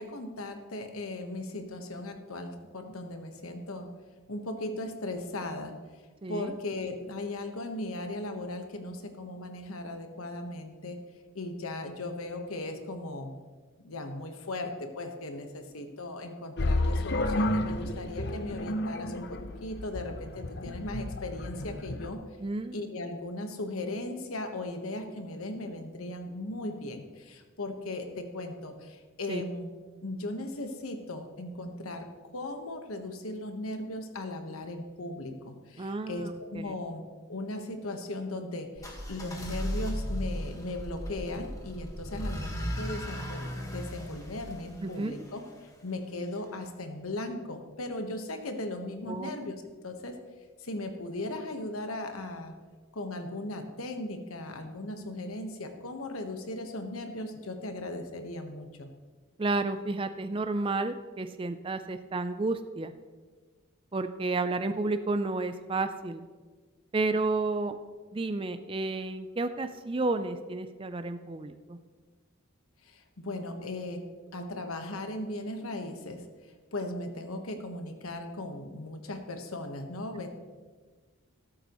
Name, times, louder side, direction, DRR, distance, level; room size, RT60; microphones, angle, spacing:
voice 1, 0.0-3.9 4.3-5.7 6.3-11.0 11.3-13.3 13.8-22.2 22.7-29.7 30.0-32.1 32.3-37.0 37.3-45.4 45.8-49.5 49.8-50.2 50.6-52.5 52.9-58.9 72.8-74.0 74.3-80.3, left 2 dB, 85° left, 6 dB, 1.3 m, -37 dB
voice 2, 6.2-6.5 22.4-22.8 29.3-29.4 35.8-36.7 44.8-45.1 49.0-49.3 59.4-62.9 63.9-66.3 66.9-67.8 68.1-71.8, right 3 dB, 25° right, 9 dB, 0.4 m, -31 dB
sound 1, 16.6-22.1, left 1 dB, 50° left, 0.7 m, -31 dB
sound 2, 38.8-45.7, equal, 15° left, 1.4 m, -36 dB
13.5 x 12.5 x 3.1 m, 1.4 s
head